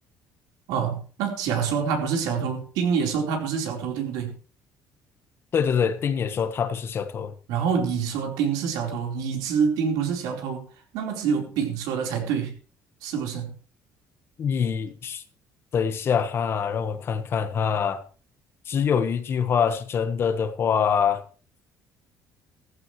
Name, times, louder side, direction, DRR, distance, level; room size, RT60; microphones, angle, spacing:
voice 1, 0.7-4.3 7.5-10.7 10.9-12.5 13.0-13.5, right 6 dB, 90° right, 4.4 m, -26 dB
voice 2, 5.5-7.3 14.4-15.2 15.7-18.0 18.7-21.2, left 7 dB, 40° left, 1.4 m, -24 dB
15.0 x 15.0 x 3.3 m
cardioid pair, 145°, 6 cm